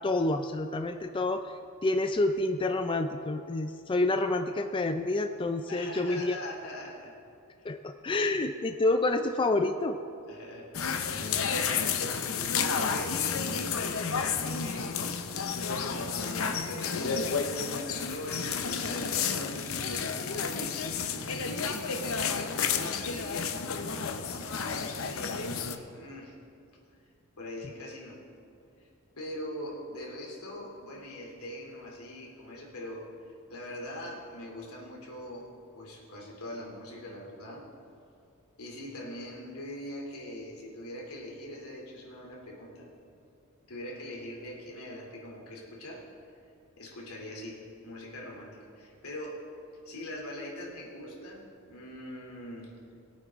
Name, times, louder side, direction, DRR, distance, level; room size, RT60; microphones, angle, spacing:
voice 1, 0.0-1.5 1.8-6.4 7.6-10.0, left 2 dB, 25° left, 7 dB, 0.4 m, -28 dB
voice 2, 5.7-7.1 7.6-7.7 10.3-10.7 11.3-15.0 15.9-19.6 20.0-24.1 24.8-26.4 27.4-28.2 28.8-28.9 29.2-35.5 35.7-37.6 38.6-42.9 43.7-46.0 46.8-49.4 49.8-52.7, left 1 dB, 85° left, -2 dB, 2.8 m, -42 dB
sound 1, 10.7-25.8, left 6 dB, 70° left, 0.7 m, -31 dB
21.5 x 8.6 x 3.6 m, 2.5 s
head